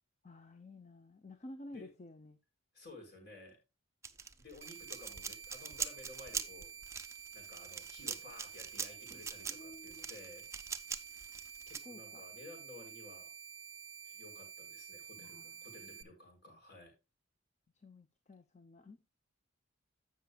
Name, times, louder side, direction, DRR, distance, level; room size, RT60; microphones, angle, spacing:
voice 1, 0.2-2.4 9.5-10.1 11.8-12.2 15.2-16.2 16.5-16.6 17.7-19.0, left 1 dB, 30° left, 0.6 m, -53 dB
voice 2, 2.7-3.6 4.4-6.7 7.3-10.5 11.3-13.3 14.0-16.9, left 2 dB, 50° left, 4.5 m, -54 dB
sound 1, 4.0-11.8, right 6 dB, 15° right, 0.5 m, -42 dB
sound 2, 4.6-16.0, right 7 dB, 60° right, 0.7 m, -50 dB
15.5 x 5.9 x 2.3 m
head